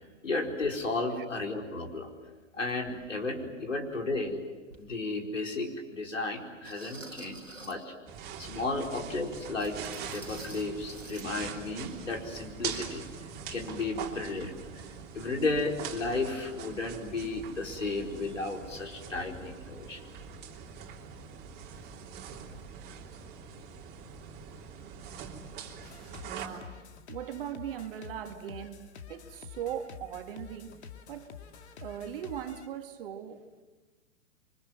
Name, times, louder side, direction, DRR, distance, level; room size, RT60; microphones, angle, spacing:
voice 1, 0.2-2.1 2.6-4.4 4.8-7.9 8.4-13.0 13.5-14.5 15.1-20.0 25.2-25.3, left 3 dB, 75° left, 4.7 m, -33 dB
sound 1, 4.7-4.8 5.5-5.6 6.6-7.9 9.6-11.3 11.6-11.7 12.2-12.3, right 2 dB, 90° right, 2.5 m, -48 dB
sound 2, 8.1-26.5, right 7 dB, 25° right, 3.3 m, -43 dB
sound 3, 25.8-32.7, left 7 dB, 60° left, 2.2 m, -49 dB
voice 2, 26.2-26.8 27.1-31.4 31.8-33.6, right 9 dB, 45° right, 2.2 m, -40 dB
27.5 x 25.0 x 7.7 m
figure-of-eight pair, 115°, 37 cm